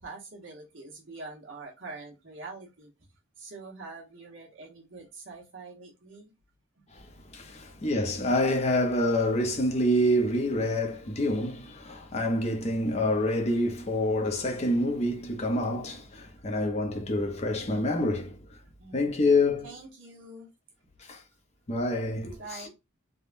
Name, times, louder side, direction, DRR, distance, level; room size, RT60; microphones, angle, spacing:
voice 1, 0.0-2.9 3.4-6.3 18.8-20.5 22.4-22.7, right 3 dB, 70° right, 1.1 m, -45 dB
voice 2, 6.9-18.6 18.9-19.7 21.0-21.2 21.7-22.7, left 1 dB, 30° left, 0.7 m, -27 dB
3.5 x 2.2 x 2.5 m
head